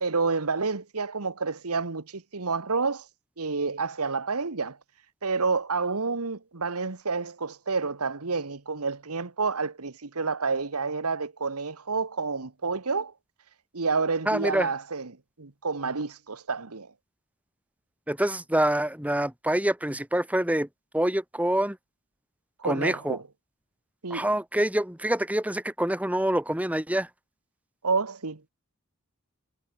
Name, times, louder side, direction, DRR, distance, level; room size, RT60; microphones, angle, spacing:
voice 1, 0.0-3.1 3.4-4.8 5.2-13.1 13.7-15.1 15.4-16.9 22.6-23.2 24.0-24.3 27.8-28.5, right 4 dB, 80° right, 1.4 m, -29 dB
voice 2, 14.3-14.7 18.1-20.7 20.9-21.8 22.6-23.2 24.1-27.1, right 1 dB, 5° right, 1.9 m, -26 dB
head